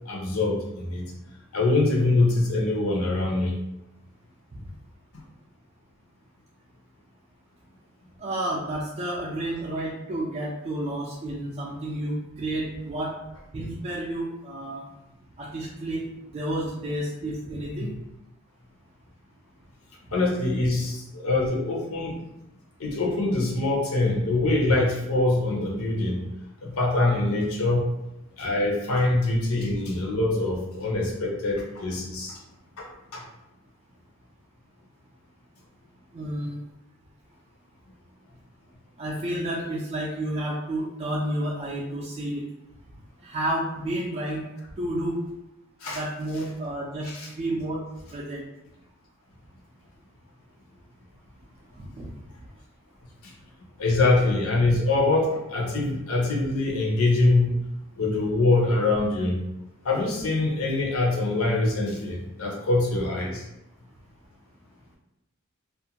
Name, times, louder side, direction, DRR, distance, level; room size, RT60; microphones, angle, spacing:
voice 1, 0.1-1.1 1.5-3.5 20.1-22.2 22.8-26.2 26.6-27.9 28.4-32.4 32.8-32.9 33.1-33.2 45.8-46.0 47.0-47.3 53.8-57.5 58.0-59.4 59.8-63.4, left 2 dB, 80° left, -1 dB, 0.7 m, -24 dB
voice 2, 8.2-13.1 13.5-14.8 15.4-16.0 16.3-17.9 36.1-36.5 39.0-42.4 43.2-44.4 44.8-45.2 45.9-47.1 47.4-47.8 48.1-48.4 52.0-52.1, right 1 dB, 30° right, -5 dB, 0.3 m, -30 dB
2.4 x 2.1 x 2.8 m, 0.90 s
head